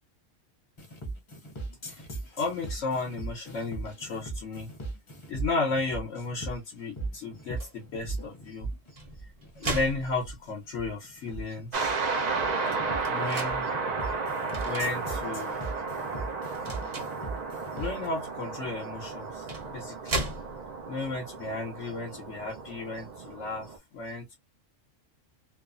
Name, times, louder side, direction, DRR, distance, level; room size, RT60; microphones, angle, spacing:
sound 1, 0.8-18.1, right 2 dB, 30° left, 0.7 m, -39 dB
voice 1, 2.3-4.7 5.3-8.7 9.2-9.3 9.6-12.2 13.1-13.7 14.6-15.6 17.7-20.2 20.9-24.4, left 3 dB, 75° left, 1.2 m, -34 dB
sound 2, 7.6-7.8 8.7-10.7 11.3-11.4 11.7-13.6 14.5-15.0 15.5-15.7 16.5-17.3 18.6-18.7 19.3-20.9, right 2 dB, 35° right, 0.8 m, -37 dB
sound 3, 11.7-23.8, right 4 dB, 50° right, 0.5 m, -33 dB
3.0 x 2.0 x 2.4 m
omnidirectional pair, 1.3 m